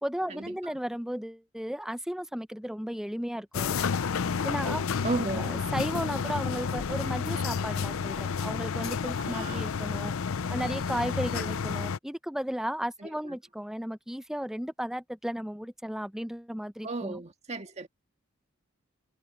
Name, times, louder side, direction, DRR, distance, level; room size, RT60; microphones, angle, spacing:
voice 1, 0.0-3.8 4.4-4.8 5.3-10.1 10.5-17.2, equal, ahead, 0.6 m, -34 dB
sound 1, 3.5-12.0, left 6 dB, 85° left, 0.6 m, -30 dB
voice 2, 5.0-5.5 9.2-9.7 11.4-11.5 13.0-13.4 16.8-17.9, right 2 dB, 35° right, 1.7 m, -35 dB
head